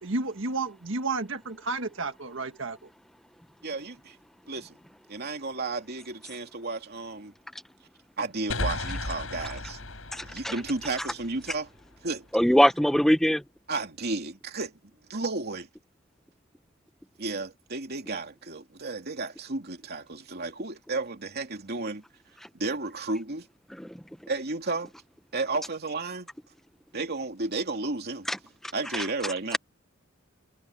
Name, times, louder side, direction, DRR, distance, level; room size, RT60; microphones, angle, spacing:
voice 1, 0.0-2.8, right 3 dB, 70° right, 1.6 m, -31 dB
voice 2, 3.6-4.2 4.5-4.8 5.1-7.3 8.2-9.8 10.2-11.7 12.0-12.3 13.7-14.7 15.1-15.7 17.2-22.0 22.5-23.5 24.3-24.9 25.3-26.3 26.9-28.3 28.7-29.6, right 3 dB, 55° right, 2.9 m, -33 dB
sound 1, 8.5-12.0, left 2 dB, 80° left, 6.6 m, -35 dB
voice 3, 10.1-10.5 12.3-13.4 23.8-23.9 28.3-28.4 28.9-29.3, equal, ahead, 0.6 m, -23 dB
head